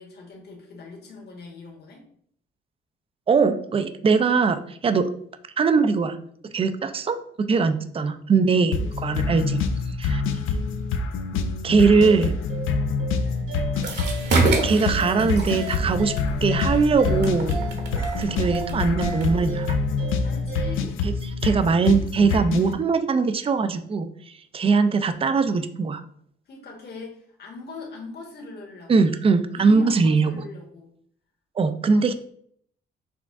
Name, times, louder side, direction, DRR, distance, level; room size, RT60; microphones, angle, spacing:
voice 1, 0.0-2.1 12.4-12.7 14.5-14.8 17.7-17.9 20.2-21.0 26.5-28.9 29.5-30.9 31.9-32.0, left 3 dB, 55° left, -1 dB, 1.4 m, -41 dB
voice 2, 3.3-5.1 5.6-6.2 6.5-9.6 10.0-10.2 11.6-12.3 14.6-16.1 16.4-17.6 18.2-19.8 21.0-21.1 21.4-26.0 28.9-30.4 31.6-32.1, right 4 dB, 30° right, 10 dB, 0.4 m, -21 dB
sound 1, 8.7-22.7, left 4 dB, 90° left, 0.5 m, -26 dB
sound 2, 11.7-20.7, right 3 dB, 90° right, 1.2 m, -37 dB
sound 3, 13.7-20.0, right 3 dB, 60° right, 1.1 m, -28 dB
6.1 x 2.4 x 3.5 m, 0.63 s
cardioid pair, 90°, 20 cm